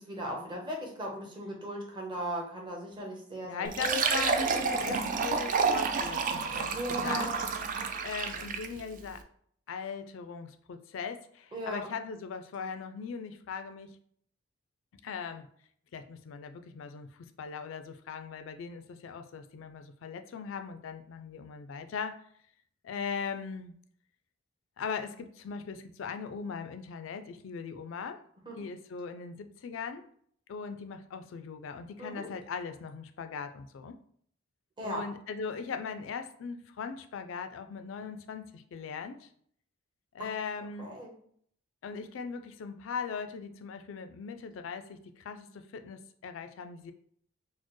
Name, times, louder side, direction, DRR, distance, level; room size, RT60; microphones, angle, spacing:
voice 1, 0.0-4.9 6.7-7.4 11.5-11.9 28.5-28.6 32.0-32.3 34.8-35.0 40.2-40.3 40.8-41.1, equal, 25° right, -1 dB, 0.8 m, -37 dB
voice 2, 3.4-7.3 8.0-9.2 9.7-14.0 15.0-15.5 15.9-22.2 22.8-23.7 24.8-28.2 28.6-30.0 30.5-34.0 34.8-39.3 40.1-40.9 41.8-46.9, left 6 dB, 65° left, 9 dB, 0.3 m, -39 dB
Fill (with liquid), 3.7-8.8, right 5 dB, 40° right, 0.3 m, -30 dB
4.2 x 2.0 x 3.0 m, 0.62 s
head